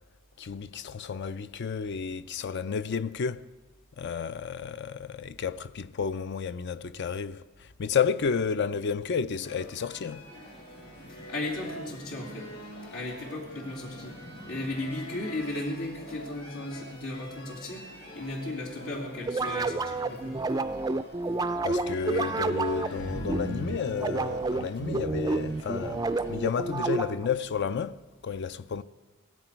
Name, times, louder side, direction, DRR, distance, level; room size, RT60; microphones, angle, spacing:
voice 1, 0.4-3.5 4.0-10.2 21.6-28.8, left 6 dB, 55° left, 0.4 m, -31 dB
sound 1, 9.4-26.9, left 1 dB, 75° left, 4.2 m, -46 dB
voice 2, 11.1-12.5 12.9-14.2 14.5-20.4, left 2 dB, 90° left, 2.6 m, -36 dB
sound 2, 19.2-27.4, right 3 dB, 20° right, 0.3 m, -30 dB
16.0 x 14.0 x 4.5 m
head